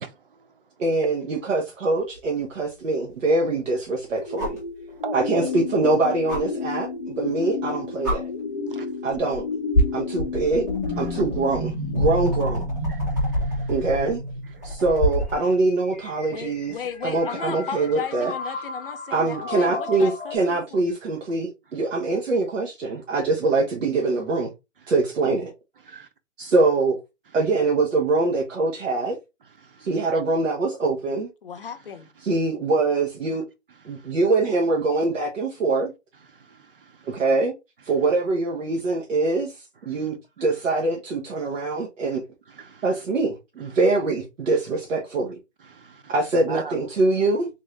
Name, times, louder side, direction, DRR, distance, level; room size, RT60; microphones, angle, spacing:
voice 1, 0.0-0.6 4.9-5.5 8.7-8.9 11.0-11.2 12.9-13.7 14.6-14.8 25.8-26.1 26.4-26.5 29.6-30.2 31.6-31.7 33.9-34.1 36.3-37.2 39.9-40.0 42.5-42.9 43.7-43.8 45.6-46.1 46.5-46.8, right 7 dB, 50° right, 0.6 m, -40 dB
voice 2, 0.8-4.6 5.1-8.3 9.0-9.4 9.9-10.6 11.0-12.6 13.7-14.2 14.6-16.8 17.0-18.3 19.1-24.5 24.9-25.5 26.4-27.0 27.3-29.2 29.8-31.3 32.2-33.4 33.8-35.9 37.1-37.5 37.8-39.5 39.8-42.2 42.8-45.4 46.1-47.5, right 3 dB, 90° right, 1.3 m, -23 dB
sound 1, 2.1-2.2 4.4-4.7 6.3-6.4 7.6-7.7 8.0-8.2 9.1-9.4 9.7-15.4 17.1-17.2, equal, 15° right, 0.7 m, -27 dB
sound 2, 4.2-20.4, left 2 dB, 15° left, 0.9 m, -32 dB
voice 3, 16.3-20.9 31.4-32.1, left 7 dB, 50° left, 0.6 m, -35 dB
3.7 x 2.7 x 3.1 m
hypercardioid pair, 175°, 36 cm